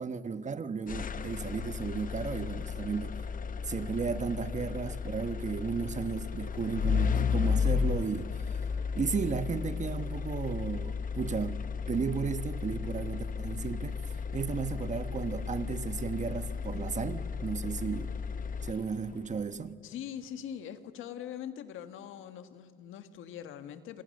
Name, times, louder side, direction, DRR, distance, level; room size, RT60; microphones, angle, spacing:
voice 1, 0.0-3.2 3.6-8.3 8.9-11.6 11.9-18.1 18.6-19.8, right 5 dB, 35° right, 1.4 m, -34 dB
sound 1, 0.9-19.1, left 6 dB, 45° left, 1.0 m, -34 dB
voice 2, 19.8-24.0, left 9 dB, 90° left, 1.7 m, -42 dB
27.5 x 27.0 x 6.7 m
cardioid pair, 90°, 20 cm